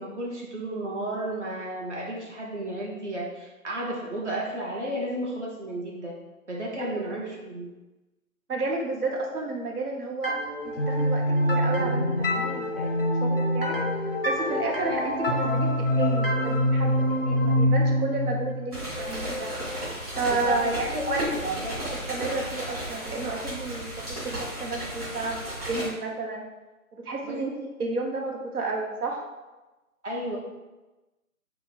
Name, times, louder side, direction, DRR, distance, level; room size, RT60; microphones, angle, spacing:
voice 1, 0.0-6.1 6.5-7.7 20.3-22.1 27.2-27.4 30.0-30.4, right 1 dB, 50° right, -3 dB, 1.0 m, -32 dB
voice 2, 6.8-7.1 8.5-10.4 10.6-13.8 14.2-19.5 20.2-21.3 22.1-26.4 26.9-29.2, right 3 dB, 85° right, 1 dB, 0.9 m, -31 dB
sound 1, 10.2-19.8, equal, 45° left, 0.4 m, -25 dB
sound 2, 18.7-25.9, right 1 dB, 25° right, 1.4 m, -34 dB
3.7 x 2.2 x 4.1 m, 1.1 s
hypercardioid pair, 175°, 44 cm